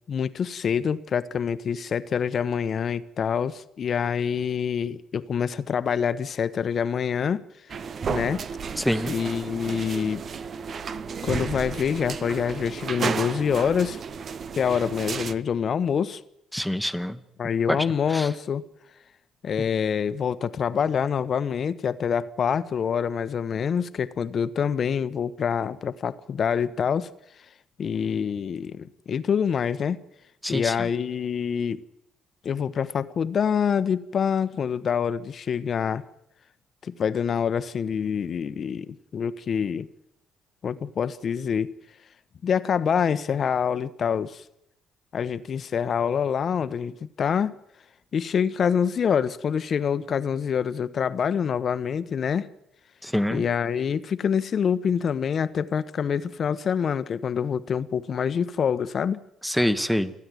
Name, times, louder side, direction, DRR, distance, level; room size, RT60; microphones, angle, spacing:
voice 1, 0.1-7.4 8.1-8.4 9.1-10.2 11.2-14.0 14.6-16.2 17.4-18.6 19.4-27.1 27.8-30.0 30.5-31.8 32.4-36.0 36.8-38.9 39.1-39.9 40.6-41.7 42.4-44.4 45.1-47.6 48.1-52.5 53.3-59.2, left 7 dB, 50° left, 1.0 m, -26 dB
sound 1, 7.7-15.3, right 6 dB, 50° right, 0.8 m, -32 dB
voice 2, 8.8-9.1 16.5-17.2 17.7-17.8 18.1-18.3 30.4-30.9 53.0-53.4 59.4-60.1, equal, ahead, 1.3 m, -25 dB
29.0 x 9.8 x 9.3 m
supercardioid pair, 80°, 0 cm